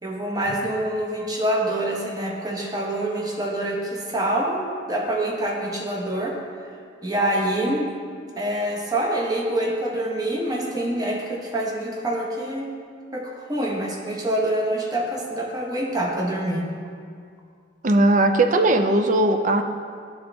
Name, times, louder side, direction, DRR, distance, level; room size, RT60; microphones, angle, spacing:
voice 1, 0.0-6.3 7.0-7.9 8.4-12.7 13.1-16.6, right 1 dB, 20° right, -1 dB, 0.9 m, -26 dB
voice 2, 17.8-19.6, right 2 dB, 40° right, 6 dB, 0.4 m, -18 dB
11.0 x 3.9 x 3.4 m, 2.2 s
head